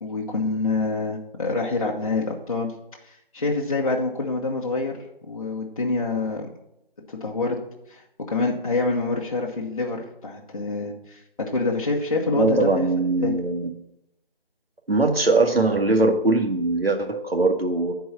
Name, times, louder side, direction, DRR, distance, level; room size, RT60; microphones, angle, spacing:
voice 1, 0.0-2.7 3.0-5.0 5.3-6.5 7.1-7.6 7.9-8.0 8.3-12.8 13.2-13.3, left 3 dB, 35° left, -2 dB, 1.0 m, -26 dB
voice 2, 12.4-13.7 14.9-17.9, right 2 dB, 85° right, 3 dB, 1.7 m, -21 dB
11.0 x 4.7 x 5.7 m, 0.83 s
figure-of-eight pair, 160°, 29 cm